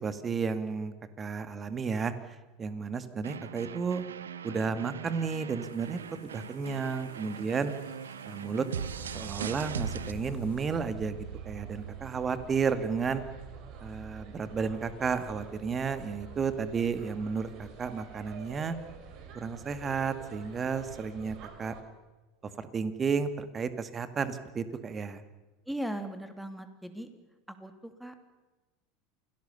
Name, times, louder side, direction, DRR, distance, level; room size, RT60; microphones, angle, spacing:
voice 1, 0.0-2.1 2.6-4.0 4.4-7.7 8.3-8.7 9.1-13.2 13.8-18.7 19.3-21.7 22.6-25.2, right 5 dB, 25° right, 11 dB, 2.1 m, -32 dB
sound 1, 3.2-10.1, right 7 dB, 80° right, 1.0 m, -40 dB
sound 2, 5.6-10.8, left 7 dB, 70° left, 3.8 m, -55 dB
sound 3, 8.8-21.8, right 5 dB, 50° right, 4.4 m, -46 dB
voice 2, 25.7-27.1 27.5-28.2, right 1 dB, 5° right, 8 dB, 2.9 m, -38 dB
28.5 x 18.5 x 7.0 m, 1.2 s
figure-of-eight pair, 80°, 0 cm